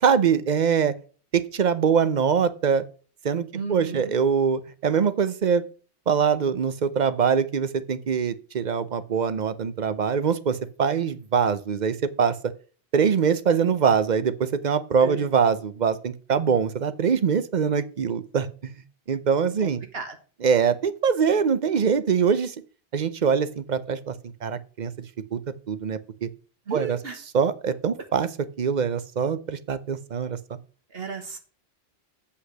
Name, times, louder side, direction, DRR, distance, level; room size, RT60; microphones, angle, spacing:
voice 1, 0.0-0.9 1.3-2.8 3.2-5.6 6.1-12.4 12.9-18.8 19.1-19.8 20.4-22.5 22.9-24.1 24.4-24.9 25.3-25.4 25.7-26.3 26.7-27.0 27.3-28.3 28.6-30.4, right 6 dB, 45° right, 14 dB, 0.8 m, -23 dB
voice 2, 3.5-4.1 15.0-15.3 19.6-20.2 26.7-27.2 30.9-31.4, right 5 dB, 65° right, 5 dB, 1.4 m, -34 dB
7.9 x 5.7 x 6.5 m, 0.39 s
omnidirectional pair, 1.1 m